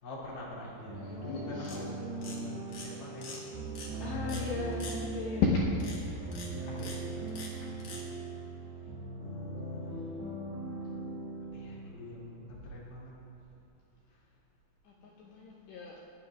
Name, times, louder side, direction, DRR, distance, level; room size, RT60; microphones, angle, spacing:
voice 1, 0.0-3.5 4.0-4.5 6.1-7.8 9.2-10.0 11.5-13.1 15.0-15.1, left 1 dB, 35° left, -7 dB, 2.1 m, -46 dB
sound 1, 0.9-12.6, right 3 dB, 65° right, 3.6 m, -40 dB
voice 2, 1.0-1.9 4.0-6.0 7.6-7.7 14.8-16.0, left 4 dB, 75° left, -5 dB, 2.8 m, -34 dB
sound 2, 1.6-1.9 2.2-2.4 2.7-2.9 3.2-3.4 3.7-3.9 4.3-4.4 4.7-4.9 5.8-6.0 6.3-6.5 6.8-7.0 7.3-7.5 7.8-8.0, left 4 dB, 55° left, 1.9 m, -44 dB
27.5 x 9.4 x 2.5 m, 2.7 s
omnidirectional pair, 5.8 m